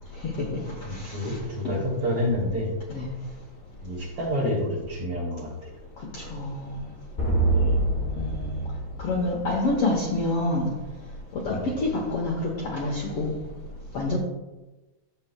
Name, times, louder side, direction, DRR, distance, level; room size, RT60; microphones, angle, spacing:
voice 1, 0.2-0.6 1.0-1.4 1.6-1.7 2.9-3.1 6.1-6.8 8.2-8.6 9.0-10.7 11.3-13.3 13.9-14.2, left 2 dB, 60° left, -2 dB, 1.7 m, -27 dB
voice 2, 0.8-2.7 3.8-5.7 7.5-7.9 11.5-11.8, left 1 dB, 45° right, -5 dB, 3.9 m, -29 dB
sound 1, 7.2-9.9, right 2 dB, 25° left, 1.1 m, -25 dB
13.5 x 7.6 x 2.3 m, 1.1 s
omnidirectional pair, 3.9 m